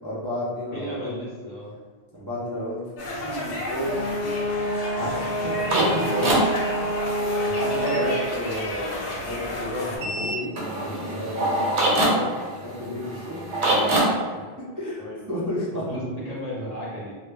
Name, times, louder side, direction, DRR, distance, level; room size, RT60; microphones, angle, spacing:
voice 1, 0.0-1.1 2.1-2.8 3.2-6.4 7.4-13.6 14.3-14.4 14.8-15.0 15.3-15.8, left 1 dB, 30° right, -10 dB, 0.3 m, -32 dB
voice 2, 0.7-1.7 5.0-5.1 15.0-15.2 15.9-17.2, equal, 50° left, -6 dB, 0.5 m, -34 dB
sound 1, 3.0-10.0, left 2 dB, 85° left, 0.8 m, -33 dB
Brass instrument, 3.8-8.3, right 1 dB, 65° right, 0.7 m, -27 dB
sound 2, 5.0-8.0 10.0-14.0, right 1 dB, 90° right, 0.9 m, -25 dB
2.1 x 2.0 x 3.2 m, 1.5 s
omnidirectional pair, 1.1 m